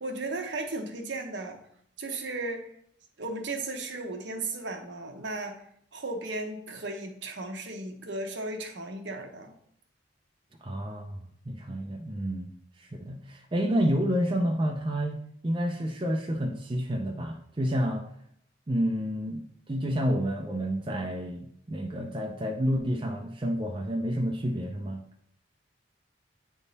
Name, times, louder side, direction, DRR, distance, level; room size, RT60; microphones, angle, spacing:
voice 1, 0.0-1.6 2.0-2.7 3.2-5.6 5.9-9.5, right 2 dB, 65° right, 3 dB, 0.9 m, -35 dB
voice 2, 10.6-12.5 12.8-15.2 15.4-18.1 18.7-25.0, equal, 25° right, 1 dB, 0.5 m, -29 dB
8.3 x 3.6 x 4.0 m, 0.68 s
head